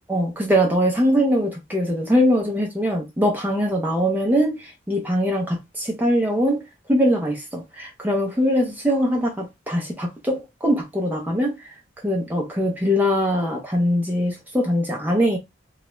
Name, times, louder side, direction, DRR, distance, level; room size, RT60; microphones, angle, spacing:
voice 1, 0.1-6.6 6.9-11.7 12.0-15.4, equal, 10° right, 0.5 m, -22 dB
2.3 x 2.0 x 3.0 m
head